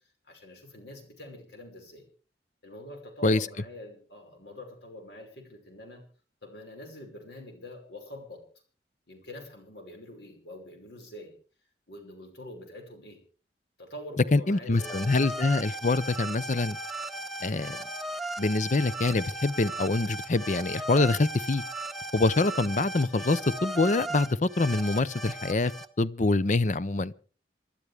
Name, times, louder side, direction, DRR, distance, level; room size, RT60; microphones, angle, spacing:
voice 1, 0.2-2.0 2.6-6.0 6.4-8.5 9.1-11.3 11.9-13.2 13.8-15.1, left 1 dB, 75° left, 5.6 m, -45 dB
voice 2, 14.3-16.8 17.4-17.8 18.4-21.6 22.1-25.7 26.0-27.1, left 2 dB, 45° left, 0.6 m, -25 dB
sound 1, 14.7-25.8, right 1 dB, ahead, 1.0 m, -37 dB
27.5 x 12.0 x 3.5 m
head